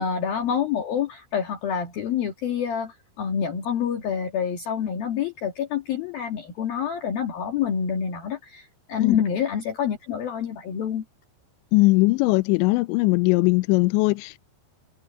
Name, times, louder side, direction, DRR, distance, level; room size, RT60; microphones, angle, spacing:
voice 1, 0.0-11.0, left 8 dB, 55° left, 3.8 m, -27 dB
voice 2, 11.7-14.4, left 23 dB, 85° left, 2.8 m, -20 dB
omnidirectional pair, 5.3 m